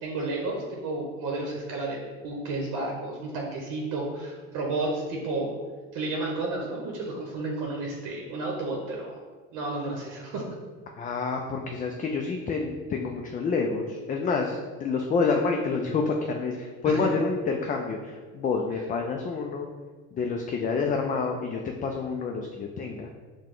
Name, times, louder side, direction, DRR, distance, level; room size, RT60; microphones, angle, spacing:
voice 1, 0.0-5.5 5.9-9.2 9.5-10.4 16.8-17.0, right 2 dB, 65° right, -1 dB, 0.9 m, -32 dB
voice 2, 11.0-19.7 20.1-23.1, left 4 dB, 25° left, 2 dB, 0.3 m, -28 dB
4.6 x 2.2 x 3.7 m, 1.4 s
supercardioid pair, 100°, 34 cm